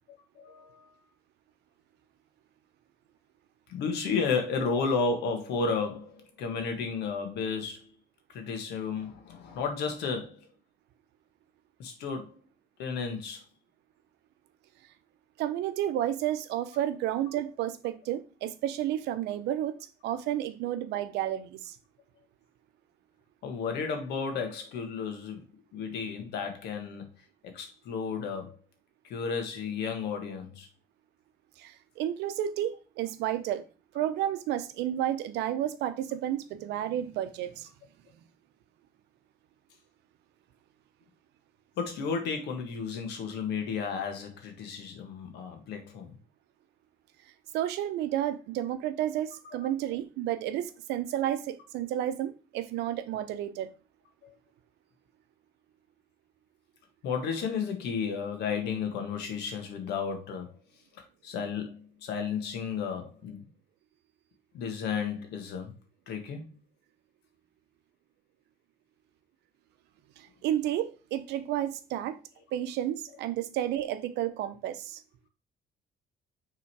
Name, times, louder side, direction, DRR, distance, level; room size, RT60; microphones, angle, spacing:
voice 1, 0.3-0.9 3.7-7.9 8.3-10.5 11.8-12.4 12.8-13.4 23.4-25.4 25.7-27.1 27.4-28.6 29.0-30.7 41.8-46.1 49.4-49.6 54.2-54.3 57.0-60.5 60.9-63.4 64.5-65.7 66.1-66.5, left 5 dB, 80° left, 1.6 m, -33 dB
voice 2, 15.4-19.8 20.0-21.8 31.6-33.6 33.9-37.7 47.5-53.7 70.2-72.2 72.5-75.0, right 12 dB, 85° right, 0.7 m, -31 dB
6.0 x 3.8 x 4.6 m
cardioid pair, 110°, 17 cm